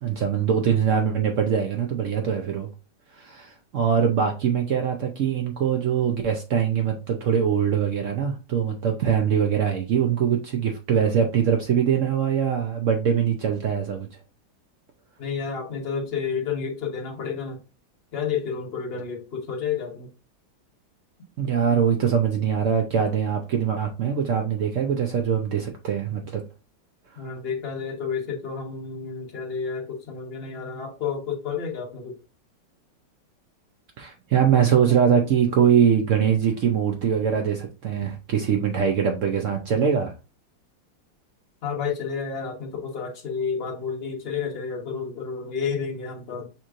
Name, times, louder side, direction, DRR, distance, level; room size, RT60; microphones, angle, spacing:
voice 1, 0.0-2.7 3.2-14.1 21.4-26.4 34.0-40.1, right 8 dB, 90° right, 0.6 m, -22 dB
voice 2, 15.2-17.6 18.1-20.1 27.2-32.2 41.6-46.5, left 6 dB, 35° left, 1.2 m, -30 dB
7.0 x 3.0 x 2.4 m
omnidirectional pair, 2.2 m